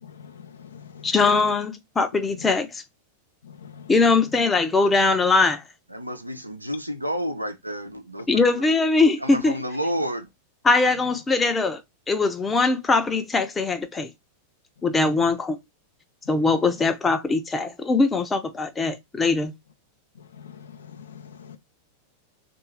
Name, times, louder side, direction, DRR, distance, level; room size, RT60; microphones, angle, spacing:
voice 1, 0.0-1.1 3.4-3.9 20.4-21.6, left 7 dB, 65° left, 0.6 m, -44 dB
voice 2, 1.0-2.8 3.9-5.6 8.3-9.6 10.6-11.8 12.1-14.1 14.8-15.6 16.3-19.5, left 3 dB, 15° left, 0.7 m, -21 dB
voice 3, 5.9-8.6 9.2-10.3, equal, 85° right, 0.7 m, -30 dB
3.7 x 2.7 x 4.3 m
figure-of-eight pair, 90°, 0 cm